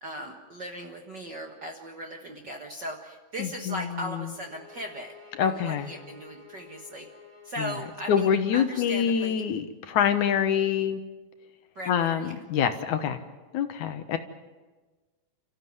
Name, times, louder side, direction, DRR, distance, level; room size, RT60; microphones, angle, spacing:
voice 1, 0.0-7.1 7.4-9.4 11.7-12.3, equal, 45° right, 3 dB, 1.4 m, -38 dB
voice 2, 3.4-3.9 5.4-5.9 7.6-7.7 8.1-11.0 11.9-13.2 13.5-14.2, left 8 dB, 70° left, 9 dB, 2.4 m, -25 dB
sound 1, 4.3-9.2, left 6 dB, 20° right, 4.7 m, -52 dB
29.5 x 15.0 x 9.4 m, 1.3 s
omnidirectional pair, 3.9 m